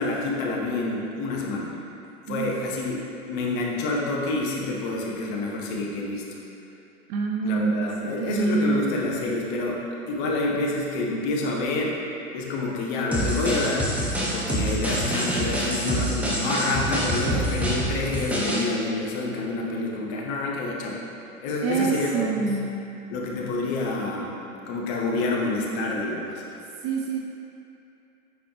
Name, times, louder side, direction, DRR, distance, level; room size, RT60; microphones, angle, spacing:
voice 1, 0.0-1.7 2.3-6.2 7.4-9.8 10.1-12.0 12.3-13.9 14.2-21.0 21.4-22.6 23.1-24.4 24.7-26.4, left 2 dB, 40° left, -2 dB, 1.2 m, -28 dB
voice 2, 7.1-8.9 21.6-22.7 26.8-27.2, right 5 dB, 30° right, 0 dB, 0.4 m, -26 dB
sound 1, 13.1-18.7, right 1 dB, 5° right, 0.9 m, -26 dB
9.3 x 4.2 x 3.1 m, 2.8 s
figure-of-eight pair, 100°, 42 cm